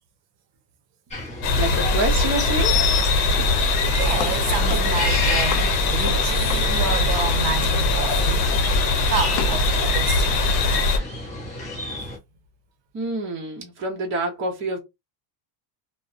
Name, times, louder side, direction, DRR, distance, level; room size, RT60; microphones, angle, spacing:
sound 1, 1.1-12.2, left 3 dB, 15° left, 0.7 m, -31 dB
sound 2, 1.4-11.0, left 2 dB, 70° left, 0.8 m, -21 dB
voice 1, 1.6-2.8 12.9-14.8, right 2 dB, 25° right, 0.7 m, -27 dB
voice 2, 3.9-8.5 9.1-10.4, right 6 dB, 65° right, 0.7 m, -29 dB
sound 3, 4.1-7.3 7.6-8.1 8.5-8.8 9.4-9.6, left 7 dB, 50° left, 0.5 m, -34 dB
2.6 x 2.1 x 2.4 m
cardioid pair, 165°, 49 cm